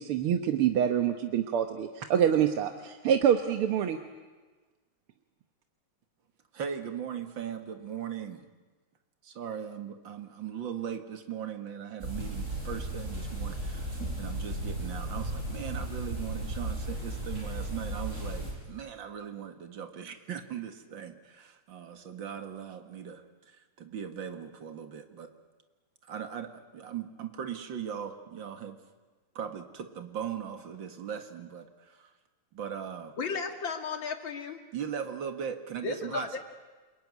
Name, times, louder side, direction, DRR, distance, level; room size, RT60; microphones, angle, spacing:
voice 1, 0.0-4.0, right 9 dB, 90° right, 6 dB, 2.1 m, -26 dB
voice 2, 6.5-8.5 9.2-25.3 26.1-28.8 29.4-32.1 32.5-33.2 34.7-36.4, right 8 dB, 65° right, 7 dB, 2.5 m, -39 dB
sound 1, 12.0-18.5, right 1 dB, 35° right, 7.4 m, -35 dB
voice 3, 33.2-34.6 35.8-36.4, left 4 dB, 65° left, 6 dB, 2.8 m, -34 dB
28.5 x 22.0 x 9.5 m, 1.3 s
omnidirectional pair, 2.3 m